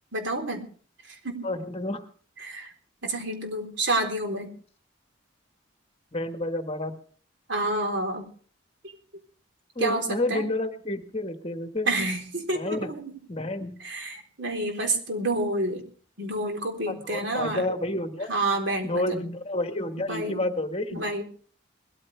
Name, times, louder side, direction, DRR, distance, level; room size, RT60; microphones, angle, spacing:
voice 1, 0.1-0.7 1.0-1.5 2.4-2.7 3.0-4.5 7.5-8.3 9.8-10.4 11.9-13.2 13.8-15.8 16.2-17.7 18.3-19.3 20.1-20.4 20.9-21.2, right 2 dB, 65° right, 4 dB, 4.0 m, -29 dB
voice 2, 1.4-2.0 6.1-7.0 9.7-11.9 12.5-12.9 13.3-13.8 16.9-18.3 18.8-21.0, left 1 dB, 30° left, 6 dB, 1.7 m, -30 dB
20.5 x 14.0 x 3.4 m, 0.43 s
head